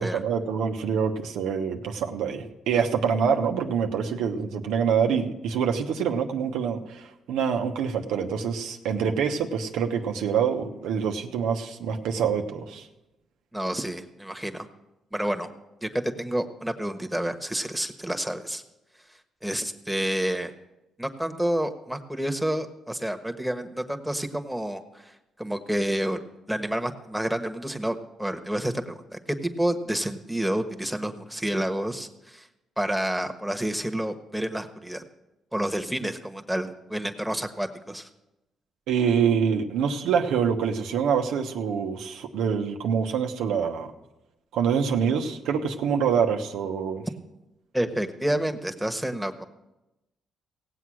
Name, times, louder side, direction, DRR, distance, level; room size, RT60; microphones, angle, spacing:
voice 1, 0.0-12.9 38.9-43.9 44.5-47.0, right 7 dB, 90° right, 4 dB, 1.2 m, -26 dB
voice 2, 13.5-14.7 15.1-15.5 15.8-18.6 19.4-20.5 21.0-25.1 25.4-26.2 26.5-32.5 32.8-35.0 35.5-38.1 47.7-49.4, right 1 dB, 5° right, 5 dB, 1.3 m, -29 dB
17.5 x 8.0 x 6.3 m, 0.95 s
cardioid pair, 90°, 0 cm